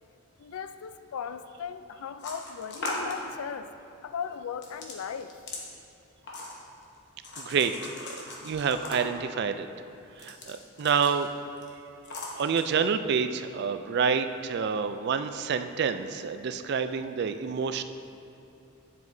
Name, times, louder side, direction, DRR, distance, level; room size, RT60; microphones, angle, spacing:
voice 1, 0.4-3.7 4.0-5.4, left 7 dB, 80° left, 11 dB, 0.4 m, -37 dB
sound 1, 2.2-3.2 4.6-5.6 6.2-6.8 7.2-9.3 10.1-11.3 11.6-11.7 12.0-12.6, left 2 dB, 50° left, 1.1 m, -38 dB
voice 2, 7.4-9.7 10.2-11.3 12.4-17.8, right 6 dB, 50° right, 9 dB, 0.3 m, -28 dB
9.5 x 7.5 x 2.7 m, 2.8 s
head